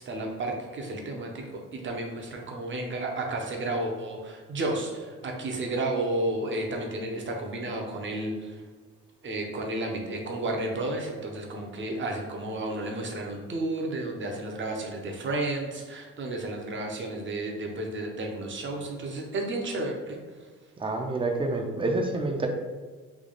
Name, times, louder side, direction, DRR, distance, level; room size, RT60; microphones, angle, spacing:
voice 1, 0.1-8.6 9.2-20.2, right 2 dB, 40° right, 1 dB, 0.8 m, -32 dB
voice 2, 20.8-22.5, right 2 dB, 15° right, 3 dB, 0.5 m, -28 dB
3.5 x 2.3 x 3.8 m, 1.4 s
cardioid pair, 90°, 30 cm